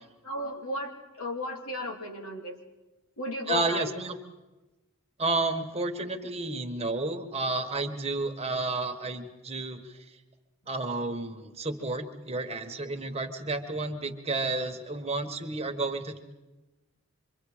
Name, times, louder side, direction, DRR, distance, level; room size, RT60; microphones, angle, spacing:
voice 1, 0.2-2.6 3.2-3.9, left 1 dB, 85° left, 1 dB, 3.0 m, -35 dB
voice 2, 3.5-4.2 5.2-10.0 10.7-16.2, right 2 dB, 30° right, 5 dB, 1.4 m, -31 dB
26.0 x 23.5 x 5.0 m, 1.1 s
head